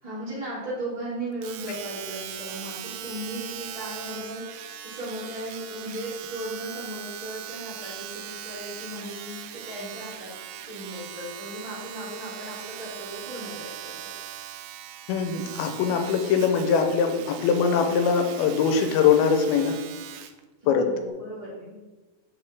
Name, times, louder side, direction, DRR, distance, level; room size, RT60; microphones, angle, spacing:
voice 1, 0.0-10.3 10.6-14.1 20.6-21.8, right 1 dB, 20° right, -11 dB, 0.9 m, -36 dB
Domestic sounds home sounds, 1.4-20.4 21.1-21.2, right 11 dB, 85° right, 2.4 m, -40 dB
voice 2, 15.1-19.8 20.7-20.8, left 6 dB, 80° left, 5 dB, 2.4 m, -22 dB
7.1 x 5.4 x 3.4 m, 1.2 s
omnidirectional pair, 4.6 m